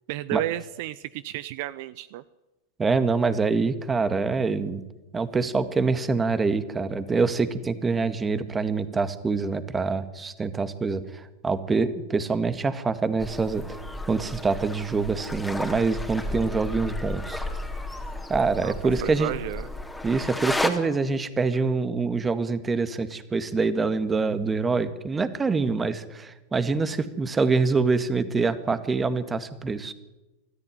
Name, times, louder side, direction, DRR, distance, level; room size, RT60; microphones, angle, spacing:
voice 1, 0.1-2.2 18.6-19.7, right 14 dB, 55° right, 17 dB, 0.6 m, -32 dB
voice 2, 2.8-4.8 5.1-13.8 14.1-17.4 18.3-19.3 20.0-29.9, right 4 dB, 15° right, 12 dB, 1.8 m, -25 dB
sound 1, 13.2-20.7, left 2 dB, 5° left, 2.8 m, -33 dB
23.5 x 14.0 x 9.2 m, 1.0 s
hypercardioid pair, 95°, 0 cm